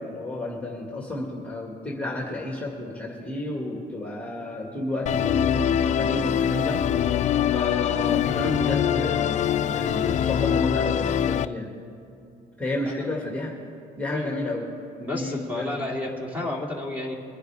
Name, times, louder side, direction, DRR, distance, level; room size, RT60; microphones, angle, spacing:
voice 1, 0.0-6.8 7.5-11.7 12.6-13.5 14.0-14.6 15.0-15.7, left 1 dB, 10° left, -2 dB, 2.0 m, -31 dB
Musical instrument, 5.1-11.5, left 9 dB, 45° left, 0.4 m, -23 dB
voice 2, 15.0-17.2, left 2 dB, 10° right, -1 dB, 2.5 m, -31 dB
23.5 x 10.5 x 3.5 m, 2.7 s
cardioid pair, 110°, 17 cm